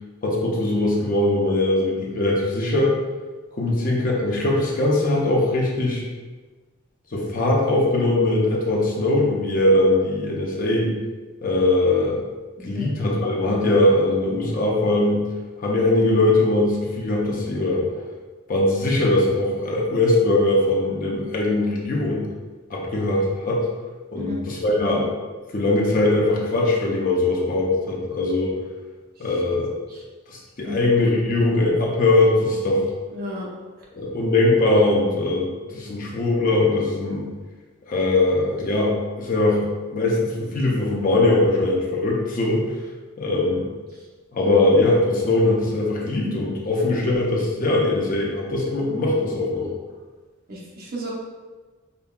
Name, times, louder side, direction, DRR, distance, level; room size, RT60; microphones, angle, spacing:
voice 1, 0.2-3.0 3.5-6.0 7.1-10.9 11.4-12.2 12.6-15.2 15.6-17.8 18.5-22.3 22.7-23.6 24.1-25.1 25.5-28.5 29.2-29.7 30.3-32.9 33.9-37.3 37.9-39.7 39.9-42.7 43.2-43.7 44.3-49.7, left 2 dB, 45° left, -3 dB, 0.6 m, -21 dB
voice 2, 12.6-12.9 24.1-24.5 29.9-30.0 30.6-30.8 33.1-33.5 50.5-51.1, left 1 dB, 45° right, -4 dB, 0.8 m, -33 dB
5.1 x 2.3 x 2.3 m, 1.3 s
head